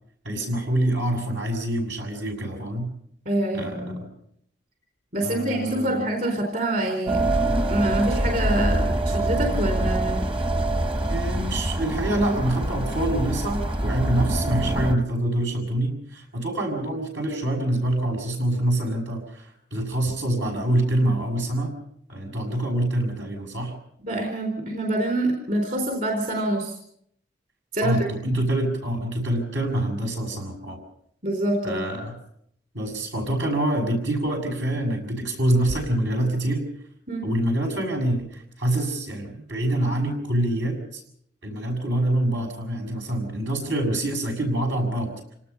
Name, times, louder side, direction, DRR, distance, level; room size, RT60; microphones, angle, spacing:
voice 1, 0.2-2.9 3.5-4.1 5.2-6.0 11.1-21.7 22.1-23.7 27.8-30.8 31.6-32.1 32.7-36.6 37.2-41.0 41.4-45.2, right 1 dB, 80° right, 2 dB, 6.8 m, -26 dB
voice 2, 3.3-4.0 5.1-7.2 7.7-10.2 24.0-26.8 27.7-28.0 31.2-31.9 37.1-37.3, right 1 dB, 50° right, 2 dB, 4.2 m, -26 dB
sound 1, 7.1-15.0, right 1 dB, 30° right, 1.1 m, -25 dB
27.5 x 19.0 x 5.6 m, 0.70 s
head